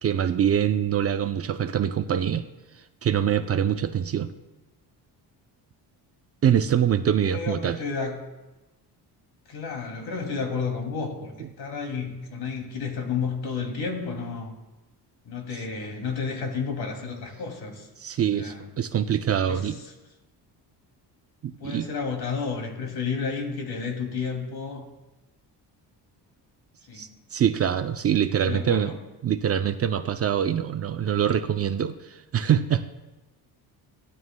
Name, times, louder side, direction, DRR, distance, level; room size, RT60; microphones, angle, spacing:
voice 1, 0.0-2.4 3.0-4.3 6.4-7.8 11.4-11.5 18.0-19.8 21.4-21.9 26.9-28.9 29.2-32.9, right 9 dB, 35° right, 9 dB, 0.5 m, -24 dB
voice 2, 7.2-8.2 9.5-11.3 11.6-14.5 15.2-17.9 18.3-18.7 19.5-19.6 21.6-24.9 26.9-27.1 28.3-29.0, left 5 dB, 65° left, 2 dB, 2.6 m, -31 dB
18.0 x 12.5 x 2.2 m, 1.1 s
cardioid pair, 125°, 41 cm